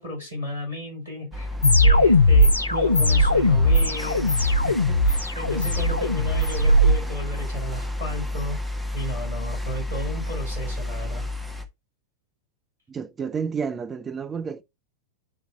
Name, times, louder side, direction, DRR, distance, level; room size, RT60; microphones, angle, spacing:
voice 1, 0.0-1.6 1.8-4.3 4.6-8.6 8.9-11.3, left 1 dB, 80° right, 4.8 m, -33 dB
City ambience, 1.3-11.6, left 1 dB, 5° left, 1.6 m, -31 dB
sound 1, 1.6-6.9, left 1 dB, 80° left, 0.6 m, -18 dB
voice 2, 12.9-14.6, right 6 dB, 20° right, 0.7 m, -30 dB
9.8 x 3.4 x 3.7 m
figure-of-eight pair, 90°, 0 cm